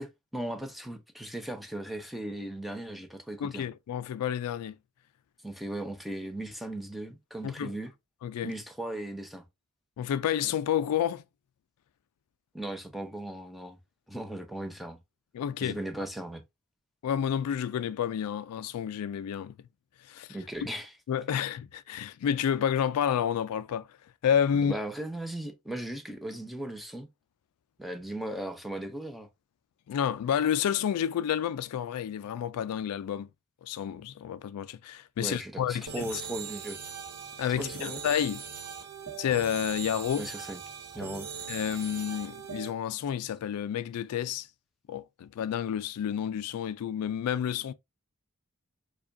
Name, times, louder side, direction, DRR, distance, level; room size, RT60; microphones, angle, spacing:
voice 1, 0.0-3.7 5.4-7.9 8.4-9.4 12.5-13.8 14.1-15.0 15.6-16.4 20.3-20.9 24.7-27.1 27.8-29.3 35.2-36.8 37.6-38.0 40.2-40.6 40.9-41.3, right 1 dB, ahead, 0.6 m, -37 dB
voice 2, 3.4-4.8 7.4-7.7 8.2-8.5 10.0-11.2 15.3-15.8 17.0-19.5 20.1-20.3 21.1-23.9 24.2-24.7 29.9-33.3 33.6-36.0 37.4-38.4 39.2-40.3 41.5-44.5 44.9-47.7, left 9 dB, 80° left, 0.3 m, -30 dB
sound 1, 35.9-42.7, right 7 dB, 85° right, 0.7 m, -40 dB
4.8 x 2.3 x 2.6 m
head